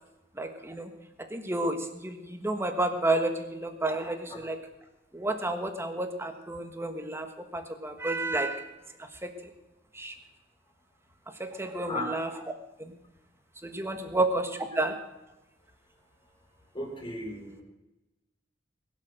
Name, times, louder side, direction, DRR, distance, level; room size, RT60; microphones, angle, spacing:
voice 1, 0.4-0.9 1.3-4.6 5.1-7.3 7.5-8.6 9.2-9.3 10.0-10.1 11.4-12.3 13.6-14.9, right 2 dB, 15° right, 6 dB, 1.4 m, -30 dB
voice 2, 16.7-17.6, left 1 dB, 25° left, 0 dB, 3.9 m, -36 dB
21.5 x 7.5 x 6.3 m, 0.99 s
head